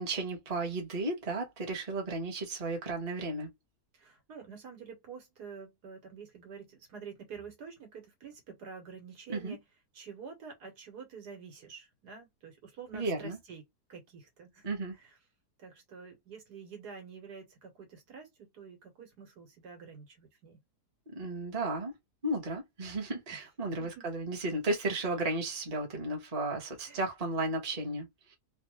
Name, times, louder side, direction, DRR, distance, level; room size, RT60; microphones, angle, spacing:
voice 1, 0.0-3.5 9.3-9.6 12.9-13.4 14.6-15.0 21.1-21.9 22.2-28.4, right 2 dB, 30° right, 1.0 m, -34 dB
voice 2, 3.9-9.6 9.9-13.6 13.9-14.7 15.0-15.1 15.6-20.6 23.3-23.4 23.8-24.1 26.8-27.0, right 6 dB, 80° right, 1.8 m, -48 dB
3.3 x 2.4 x 3.0 m
omnidirectional pair, 1.7 m